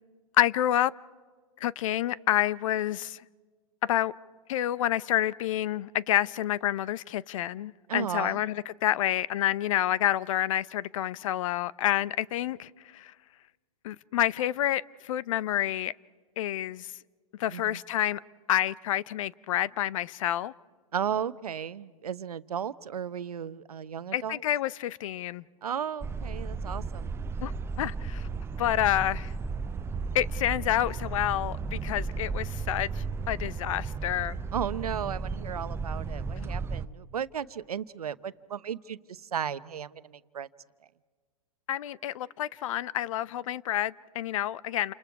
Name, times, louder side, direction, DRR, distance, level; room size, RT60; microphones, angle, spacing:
voice 1, 0.4-0.9 1.6-3.2 3.9-4.1 4.5-13.1 13.8-15.9 16.4-16.9 17.4-18.2 18.5-20.5 24.1-25.4 27.4-27.5 27.8-28.3 28.6-29.3 30.1-34.4 41.7-44.9, left 12 dB, 60° left, 20 dB, 0.7 m, -28 dB
voice 2, 7.9-8.4 17.5-17.8 20.9-24.4 25.6-27.1 34.5-40.5, right 8 dB, 85° right, 14 dB, 0.9 m, -35 dB
sound 1, 26.0-36.9, right 4 dB, 15° right, 0.6 m, -34 dB
29.0 x 28.5 x 4.7 m, 1.5 s
hypercardioid pair, 120°, 19 cm